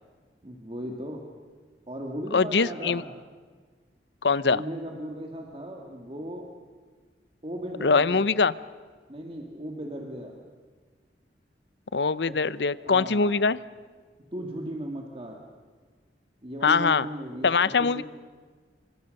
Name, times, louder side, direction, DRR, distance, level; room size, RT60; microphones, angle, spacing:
voice 1, 0.4-1.2 1.9-3.1 4.4-6.5 7.4-8.3 9.1-10.4 12.3-12.4 12.8-13.4 14.3-15.4 16.4-18.0, equal, 30° right, 1 dB, 2.2 m, -36 dB
voice 2, 2.3-3.0 4.2-4.6 7.8-8.5 11.9-13.6 16.6-17.1 17.4-18.0, left 4 dB, 75° left, 17 dB, 0.7 m, -22 dB
28.0 x 25.0 x 6.6 m, 1.5 s
head